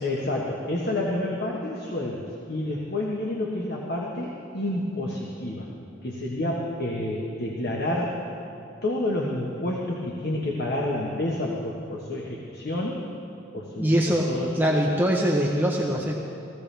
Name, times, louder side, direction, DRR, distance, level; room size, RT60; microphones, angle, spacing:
voice 1, 0.0-5.7 6.0-8.2 8.8-13.0 13.5-14.6, left 1 dB, 55° left, -2 dB, 1.3 m, -29 dB
voice 2, 13.8-14.3 14.6-16.1, equal, 10° right, -2 dB, 0.9 m, -22 dB
17.0 x 15.5 x 3.4 m, 2.6 s
head